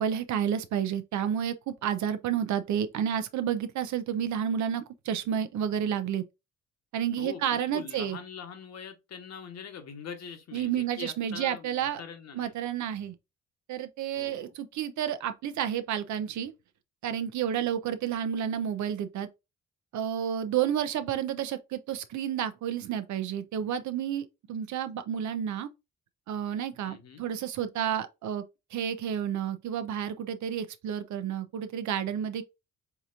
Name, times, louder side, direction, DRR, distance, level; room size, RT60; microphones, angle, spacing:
voice 1, 0.0-6.2 6.9-8.2 10.5-12.0 12.3-13.2 13.7-16.5 17.0-19.3 19.9-25.7 26.3-28.4 28.7-32.4, right 9 dB, 70° right, 0.7 m, -30 dB
voice 2, 7.2-12.5 14.1-14.5 26.8-27.2, left 6 dB, 60° left, 1.2 m, -43 dB
4.7 x 2.9 x 2.4 m
cardioid pair, 90°, 30 cm